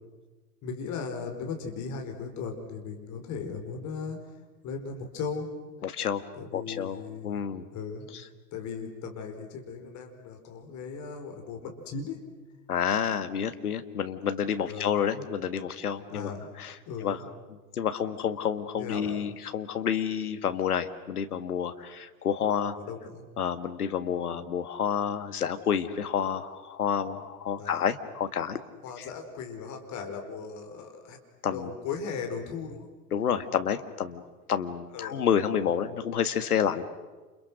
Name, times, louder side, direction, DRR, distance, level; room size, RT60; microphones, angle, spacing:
voice 1, 0.6-4.2 4.6-5.5 6.4-7.4 7.7-8.1 8.5-12.2 14.7-15.0 16.1-16.5 16.9-17.2 18.7-19.2 22.7-23.3 27.6-27.8 28.8-31.2 31.5-32.9 34.9-35.2, left 5 dB, 40° left, 4 dB, 4.9 m, -37 dB
voice 2, 5.8-6.2 6.5-7.7 12.7-16.3 16.6-16.7 17.0-17.2 17.7-22.8 23.4-28.6 29.0-29.1 31.4-31.7 33.1-34.2 34.5-36.9, left 8 dB, 70° left, 10 dB, 1.7 m, -29 dB
30.0 x 29.0 x 6.3 m, 1.3 s
figure-of-eight pair, 85°, 46 cm